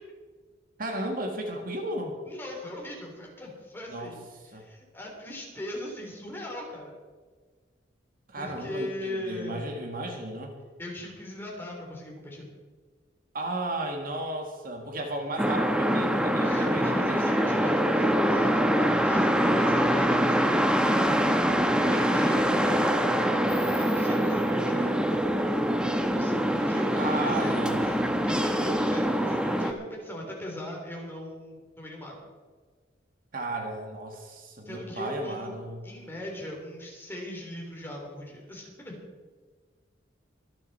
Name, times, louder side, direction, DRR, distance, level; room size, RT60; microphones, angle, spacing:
voice 1, 0.8-2.2 3.9-4.2 4.5-4.6 8.3-10.5 13.3-17.6 18.7-19.5 26.9-28.3 33.3-35.9, right 1 dB, 50° right, 3 dB, 1.9 m, -34 dB
voice 2, 2.3-4.1 4.5-6.9 8.4-9.8 10.8-12.5 16.4-18.6 19.0-21.4 21.7-25.0 26.1-32.1 34.6-35.5 35.8-39.0, left 1 dB, 10° left, -1 dB, 3.4 m, -39 dB
sound 1, 15.4-29.7, equal, 5° right, 0.9 m, -24 dB
24.0 x 8.9 x 4.3 m, 1.4 s
head